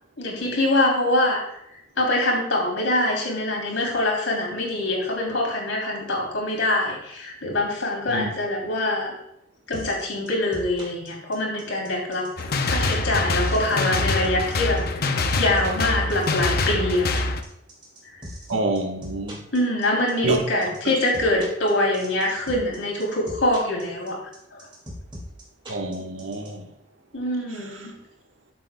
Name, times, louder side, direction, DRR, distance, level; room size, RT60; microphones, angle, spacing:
voice 1, 0.2-1.4 2.0-9.1 9.7-12.3 12.6-15.0 15.3-17.3 19.5-24.2 27.1-27.9, left 1 dB, 85° left, 3.2 m, -24 dB
sound 1, 9.7-26.5, equal, 25° right, 2.4 m, -39 dB
sound 2, 12.4-17.4, left 3 dB, 55° left, 0.7 m, -25 dB
voice 2, 18.5-19.4 20.2-20.4 20.8-20.9 25.7-26.6, right 2 dB, 80° right, 1.4 m, -27 dB
13.5 x 7.5 x 2.3 m
head